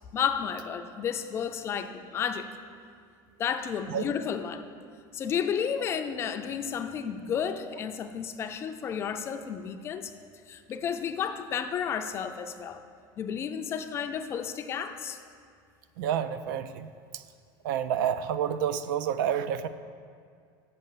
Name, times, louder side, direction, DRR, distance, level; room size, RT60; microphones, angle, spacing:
voice 1, 0.1-2.5 3.4-4.6 5.1-10.1 10.5-12.8 13.2-15.2, left 7 dB, 25° left, 8 dB, 0.4 m, -32 dB
voice 2, 16.0-17.2 17.6-19.7, right 9 dB, 75° right, 12 dB, 0.4 m, -29 dB
6.8 x 5.4 x 7.2 m, 2.2 s
supercardioid pair, 160°, 11 cm